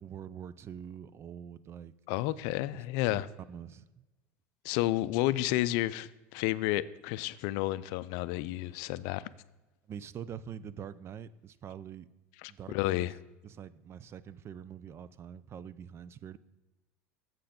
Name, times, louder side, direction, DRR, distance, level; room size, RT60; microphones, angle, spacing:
voice 1, 0.0-1.9 2.7-2.8 3.1-3.2 3.5-4.1 9.9-12.1 12.5-13.1 13.4-16.4, right 8 dB, 40° right, 0.4 m, -45 dB
voice 2, 2.1-3.3 4.6-9.2 12.7-13.1, left 16 dB, 65° left, 0.4 m, -31 dB
7.4 x 5.7 x 5.1 m
hypercardioid pair, 85°, 7 cm